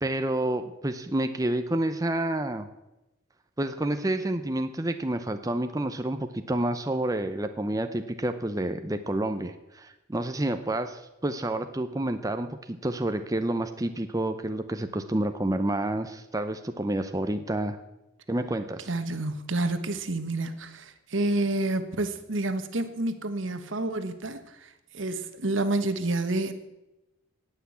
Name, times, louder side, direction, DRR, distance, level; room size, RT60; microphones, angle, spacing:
voice 1, 0.0-2.7 3.6-17.8 18.3-18.9, right 1 dB, 15° right, 8 dB, 0.6 m, -29 dB
voice 2, 18.9-26.5, right 2 dB, 75° right, 10 dB, 1.3 m, -29 dB
18.0 x 6.1 x 8.6 m, 0.97 s
head